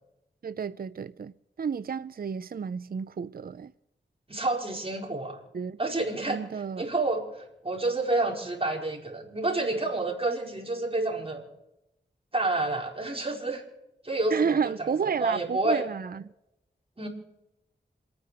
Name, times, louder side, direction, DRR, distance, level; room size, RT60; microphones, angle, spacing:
voice 1, 0.4-1.3 1.6-3.7 5.5-5.8 6.3-6.8 14.3-16.2, right 6 dB, 50° right, 0.5 m, -31 dB
voice 2, 4.3-5.4 5.8-6.4 6.8-11.5 12.3-13.6 14.0-14.7 15.0-15.9 17.0-17.1, right 2 dB, 30° right, 4.6 m, -29 dB
27.5 x 9.7 x 4.9 m
cardioid pair, 55°, 19 cm